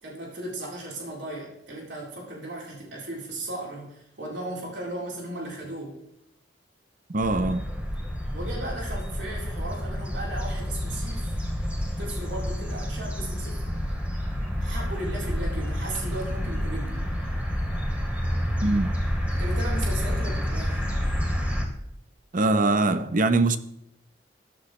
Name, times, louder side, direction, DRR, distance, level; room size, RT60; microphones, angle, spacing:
voice 1, 0.0-6.0 8.3-11.3 12.0-13.6 14.6-17.0 19.3-20.9, right 1 dB, 90° right, 4.2 m, -36 dB
voice 2, 7.1-7.6 18.6-18.9 22.3-23.6, right 2 dB, 50° right, 0.9 m, -22 dB
sound 1, 7.2-21.6, equal, 10° right, 3.0 m, -29 dB
15.5 x 11.5 x 3.3 m
head